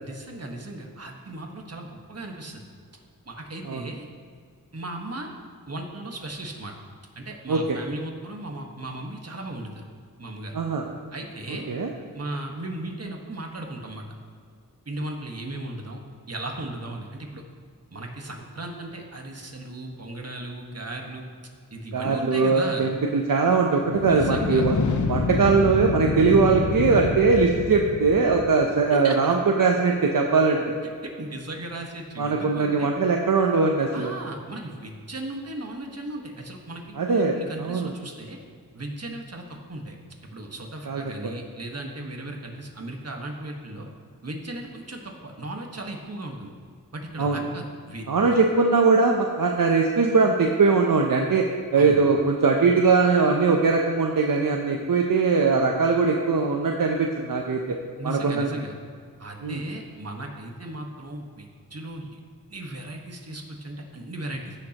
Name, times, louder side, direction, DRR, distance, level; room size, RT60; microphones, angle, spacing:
voice 1, 0.0-2.6 3.2-4.1 4.7-5.3 5.7-6.7 7.1-9.8 10.2-10.6 11.1-11.7 12.1-14.0 14.8-16.0 16.3-17.4 17.9-21.2 21.7-22.9 24.0-24.6 28.9-29.3 31.0-32.9 33.9-38.4 38.7-39.9 40.2-43.9 44.2-46.5 46.9-48.4 51.8-52.0 58.0-58.7 59.2-62.2 62.5-64.5, right 1 dB, 45° right, 1 dB, 1.4 m, -36 dB
voice 2, 10.5-10.8 11.7-11.9 21.9-24.8 25.1-30.7 32.2-34.1 37.0-37.9 40.9-41.0 47.2-47.4 48.1-51.5 51.7-57.8 58.0-58.5 59.4-59.6, right 4 dB, 70° right, 1 dB, 0.7 m, -21 dB
sound 1, 23.8-28.7, left 4 dB, 55° left, 0.8 m, -27 dB
16.0 x 6.6 x 3.0 m, 2.1 s
wide cardioid pair, 65°, 35 cm